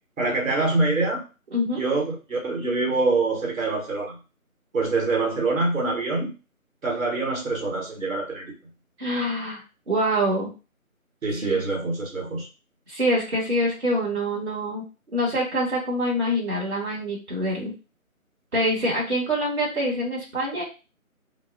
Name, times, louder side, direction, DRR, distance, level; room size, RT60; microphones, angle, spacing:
voice 1, 0.2-1.2 1.7-4.2 4.7-6.3 6.8-8.5 11.2-12.5, right 3 dB, 70° right, 0 dB, 1.2 m, -25 dB
voice 2, 9.0-10.5 11.4-11.6 12.9-14.8 15.1-17.7 18.5-20.6, equal, 50° right, -4 dB, 1.1 m, -25 dB
2.3 x 2.0 x 3.6 m, 0.32 s
figure-of-eight pair, 165°, 43 cm